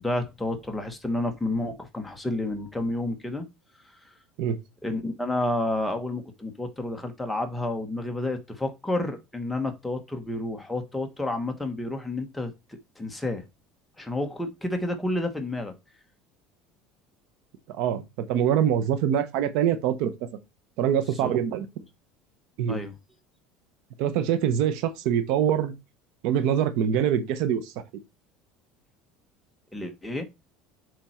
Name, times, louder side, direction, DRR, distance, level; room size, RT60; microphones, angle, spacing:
voice 1, 0.0-3.4 4.8-13.4 14.0-15.7 21.2-21.3 22.7-22.9 29.7-30.2, left 2 dB, 5° left, 1.1 m, -30 dB
voice 2, 18.3-20.1 20.8-21.7 22.6-22.8 24.0-25.7 26.2-27.7, right 9 dB, 65° right, 1.0 m, -24 dB
7.1 x 4.5 x 4.4 m
cardioid pair, 150°, 0 cm